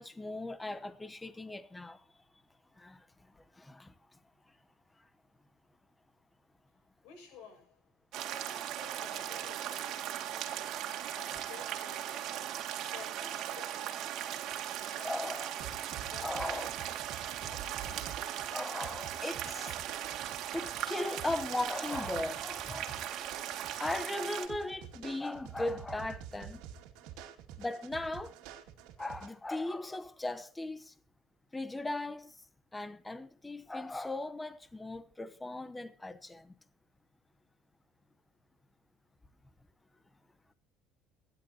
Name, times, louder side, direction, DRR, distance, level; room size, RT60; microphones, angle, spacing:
voice 1, 0.0-2.0 2.8-3.0 3.6-3.9 15.0-15.5 16.2-16.7 18.5-19.8 20.5-23.0 23.8-26.6 27.6-28.3 29.0-30.9 31.5-32.3 32.7-36.5, left 2 dB, 10° left, 0.9 m, -38 dB
voice 2, 7.0-7.8 8.2-12.4 12.8-16.7, left 6 dB, 80° left, 6.4 m, -54 dB
sound 1, 8.1-24.5, right 11 dB, 50° right, 2.2 m, -38 dB
sound 2, 15.6-29.3, right 9 dB, 80° right, 2.1 m, -48 dB
26.5 x 10.5 x 2.8 m
cardioid pair, 155°, 0 cm